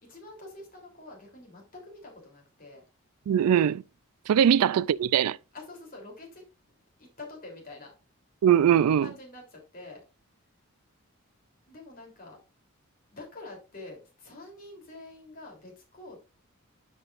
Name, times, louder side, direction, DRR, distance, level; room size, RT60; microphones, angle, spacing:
voice 1, 0.0-2.8 4.4-4.5 5.5-6.4 7.0-7.9 9.0-10.0 11.7-12.4 13.1-16.2, left 2 dB, 40° left, 3.3 m, -46 dB
voice 2, 3.3-3.8 4.3-5.4 8.4-9.1, right 9 dB, 85° right, 0.3 m, -21 dB
11.5 x 5.5 x 2.5 m
head